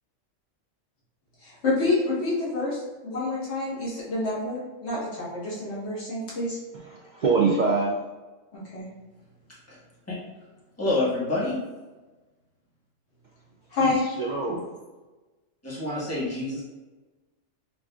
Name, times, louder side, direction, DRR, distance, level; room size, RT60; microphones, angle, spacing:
voice 1, 1.4-6.6 8.5-8.9 13.7-14.0, left 2 dB, 55° left, -8 dB, 1.6 m, -28 dB
voice 2, 6.7-8.0 13.8-14.7, right 4 dB, 75° right, -2 dB, 0.4 m, -25 dB
voice 3, 10.8-11.6 14.5-14.6 15.6-16.6, left 2 dB, 10° left, -7 dB, 1.1 m, -27 dB
6.0 x 2.4 x 2.3 m, 1.2 s
omnidirectional pair, 1.3 m